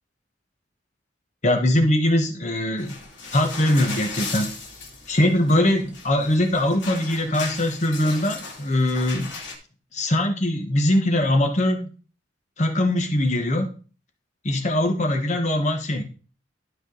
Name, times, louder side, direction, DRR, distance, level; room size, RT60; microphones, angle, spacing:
voice 1, 1.4-3.0 3.3-4.5 5.1-9.3 9.9-11.9 12.6-13.7 14.4-16.0, left 1 dB, 40° left, 5 dB, 1.2 m, -21 dB
sound 1, 2.8-9.5, left 4 dB, 90° left, 2.6 m, -37 dB
12.5 x 4.9 x 3.9 m, 0.38 s
head